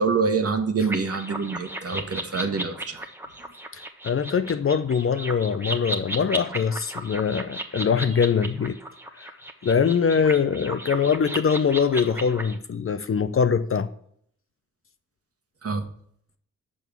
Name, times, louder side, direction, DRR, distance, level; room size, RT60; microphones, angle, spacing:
voice 1, 0.0-3.0 15.6-15.8, right 4 dB, 40° right, 1.3 m, -25 dB
sound 1, 0.8-12.6, right 1 dB, 5° right, 1.1 m, -35 dB
voice 2, 3.7-8.8 9.1-9.3 9.6-13.9, left 6 dB, 40° left, 0.6 m, -23 dB
6.1 x 5.3 x 6.1 m
supercardioid pair, 45°, 35 cm